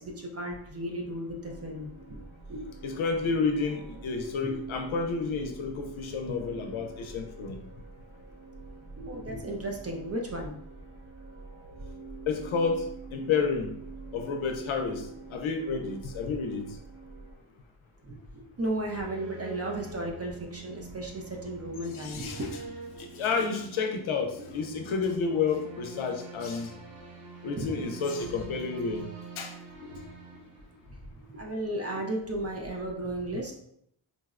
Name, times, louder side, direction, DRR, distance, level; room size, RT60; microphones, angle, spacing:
voice 1, 0.0-2.0 2.5-2.6 8.9-10.6 18.0-22.7 27.6-27.7 29.8-30.0 31.2-33.5, right 1 dB, 35° right, 1 dB, 0.4 m, -35 dB
sound 1, 1.4-17.3, right 3 dB, 90° right, 1.5 m, -46 dB
voice 2, 2.8-7.6 12.3-13.7 14.1-16.7 21.9-22.4 22.9-26.7 27.4-29.1 29.4-29.5, left 5 dB, 80° left, 5 dB, 0.5 m, -30 dB
sound 2, 18.4-31.3, right 3 dB, 65° right, 0.8 m, -46 dB
3.8 x 2.0 x 2.4 m, 0.73 s
wide cardioid pair, 150°, 48 cm